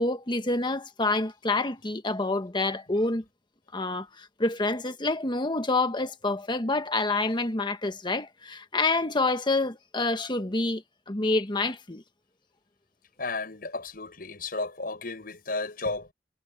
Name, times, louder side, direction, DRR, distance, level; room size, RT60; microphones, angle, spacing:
voice 1, 0.0-3.2 3.7-12.0, left 2 dB, 25° left, 1.4 m, -27 dB
voice 2, 13.2-16.1, left 3 dB, 55° left, 7.0 m, -33 dB
head